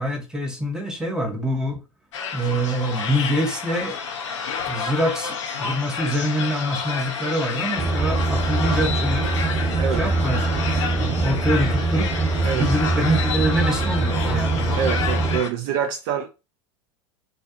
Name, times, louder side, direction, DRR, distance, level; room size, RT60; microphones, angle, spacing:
voice 1, 0.0-1.8 2.3-4.0 4.7-9.3 9.9-12.1 12.5-14.8, equal, 5° right, 0.7 m, -25 dB
sound 1, 2.1-15.5, left 6 dB, 65° left, 0.6 m, -30 dB
sound 2, 7.8-15.4, right 3 dB, 25° right, 1.1 m, -23 dB
voice 2, 14.8-16.3, right 8 dB, 45° right, 0.4 m, -26 dB
2.5 x 2.4 x 2.4 m
figure-of-eight pair, 85°, 17 cm